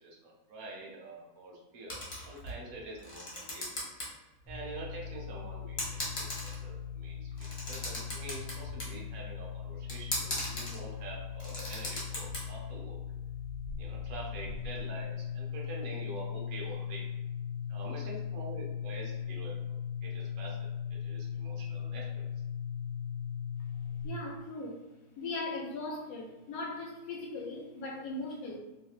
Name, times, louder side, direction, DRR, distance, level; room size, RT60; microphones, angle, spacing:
voice 1, 0.0-4.0 4.5-13.0 13.8-17.0 17.7-19.8 20.0-22.2, right 2 dB, 70° right, -2 dB, 1.1 m, -46 dB
sound 1, 1.9-2.6 3.0-4.1 4.4-4.5 5.3-5.4 5.8-6.8 7.3-8.9 9.9-10.8 11.2-12.4, left 1 dB, 40° left, 1.4 m, -37 dB
sound 2, 4.4-24.1, left 7 dB, 20° left, 0.7 m, -39 dB
voice 2, 24.0-24.8 25.2-28.6, left 2 dB, 70° left, 0 dB, 1.0 m, -39 dB
3.2 x 3.1 x 2.3 m, 1.1 s
omnidirectional pair, 1.7 m